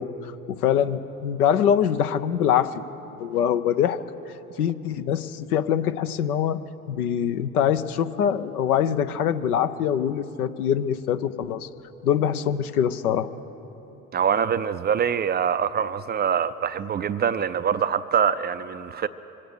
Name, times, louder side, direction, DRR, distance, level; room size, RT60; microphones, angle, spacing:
voice 1, 0.0-2.8 3.2-4.0 4.6-6.6 6.9-11.7 12.0-13.3, left 9 dB, 80° left, 0.7 m, -24 dB
voice 2, 14.1-19.1, right 8 dB, 25° right, 0.4 m, -24 dB
25.0 x 8.7 x 6.6 m
figure-of-eight pair, 60°, 44 cm